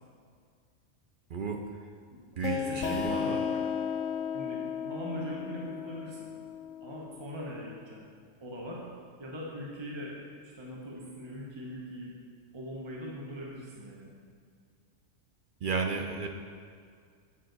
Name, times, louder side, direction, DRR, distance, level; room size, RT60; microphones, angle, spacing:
voice 1, 1.3-1.6 2.4-3.4 15.6-16.3, right 5 dB, 60° right, 3 dB, 0.5 m, -33 dB
voice 2, 2.1-3.6 4.3-6.3 6.8-8.1 8.4-8.8 9.2-10.1 10.4-12.1 12.5-14.1, equal, 25° right, -4 dB, 1.0 m, -40 dB
sound 1, 2.4-7.8, left 7 dB, 85° left, 1.0 m, -35 dB
7.8 x 6.7 x 3.9 m, 2.1 s
omnidirectional pair, 1.3 m